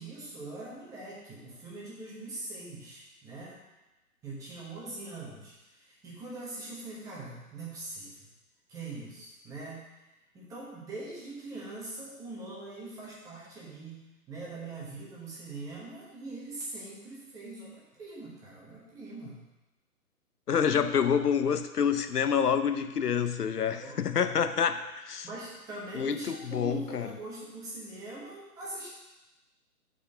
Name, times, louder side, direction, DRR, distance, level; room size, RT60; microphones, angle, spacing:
voice 1, 0.0-3.6 4.2-8.2 8.7-9.9 10.3-19.4 23.6-24.4 25.2-28.9, right 2 dB, 5° right, -5 dB, 1.0 m, -42 dB
voice 2, 20.5-25.3 25.9-27.1, left 7 dB, 80° left, 10 dB, 0.7 m, -27 dB
6.4 x 4.7 x 6.4 m, 1.0 s
figure-of-eight pair, 140°, 46 cm